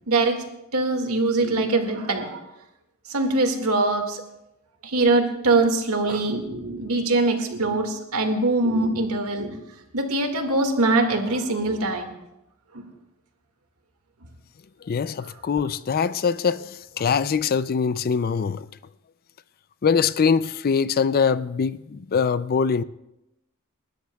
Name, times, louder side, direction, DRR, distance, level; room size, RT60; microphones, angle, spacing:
voice 1, 0.1-0.4 0.7-2.4 3.1-4.2 4.8-9.6 9.9-12.2 12.7-12.8, right 2 dB, 90° right, 1.9 m, -23 dB
voice 2, 14.8-18.7 19.8-22.8, left 6 dB, 45° left, 0.4 m, -23 dB
29.5 x 13.0 x 2.3 m
head